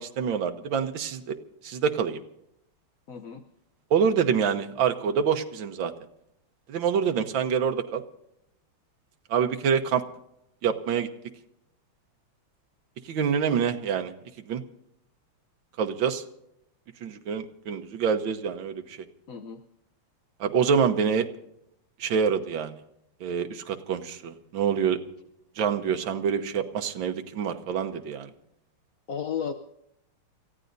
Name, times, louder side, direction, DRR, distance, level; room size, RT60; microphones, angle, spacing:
voice 1, 0.0-1.4 1.6-2.2 3.9-5.9 6.7-8.0 9.3-10.0 10.6-11.1 13.1-14.1 14.5-14.6 15.8-16.2 17.0-19.0 20.4-21.3 22.0-22.7 23.2-25.0 25.6-28.3, right 7 dB, 65° right, 6 dB, 1.8 m, -26 dB
voice 2, 3.1-3.4 19.3-19.6 29.1-29.5, left 7 dB, 60° left, 5 dB, 0.9 m, -33 dB
29.5 x 15.0 x 2.7 m, 0.81 s
omnidirectional pair, 2.4 m